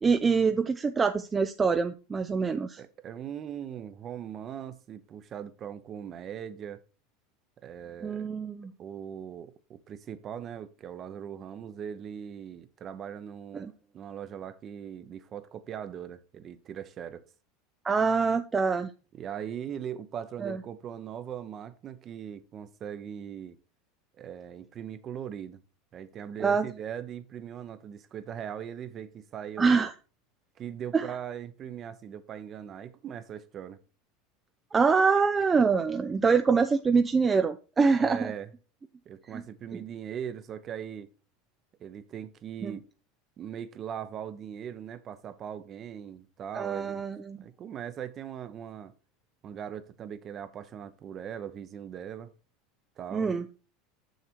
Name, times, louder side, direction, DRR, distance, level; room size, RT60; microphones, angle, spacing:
voice 1, 0.0-2.8 8.0-8.7 13.5-13.7 17.8-18.9 20.4-20.6 26.4-26.7 29.6-29.9 30.9-31.1 34.7-38.3 39.3-39.4 42.6-42.8 46.5-47.4 53.1-53.5, right 5 dB, 20° right, 0.4 m, -25 dB
voice 2, 2.8-6.8 7.6-8.3 8.8-17.3 19.1-23.6 24.2-25.6 25.9-29.9 30.6-33.8 38.0-38.5 39.1-41.1 41.8-42.9 43.4-47.0 47.4-48.9 49.4-52.3 53.0-53.3, right 9 dB, 35° right, 0.9 m, -40 dB
6.6 x 6.5 x 4.5 m
supercardioid pair, 120°, 0 cm